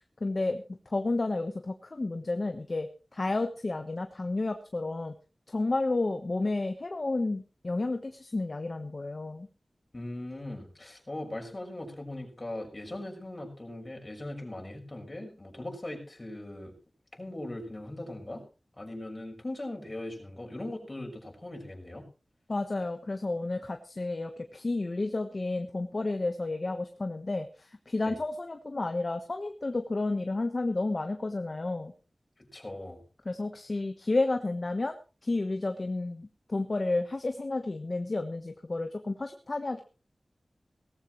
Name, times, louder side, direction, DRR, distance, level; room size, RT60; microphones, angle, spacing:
voice 1, 0.2-5.2 5.5-9.5 22.5-31.9 33.2-35.0 35.2-39.8, left 2 dB, 50° left, 6 dB, 1.3 m, -31 dB
voice 2, 9.9-16.7 17.1-18.4 18.8-22.0 28.0-28.2 32.4-33.0, left 1 dB, 35° left, 1 dB, 6.1 m, -40 dB
18.0 x 15.0 x 3.2 m, 0.34 s
wide cardioid pair, 60°, 0 cm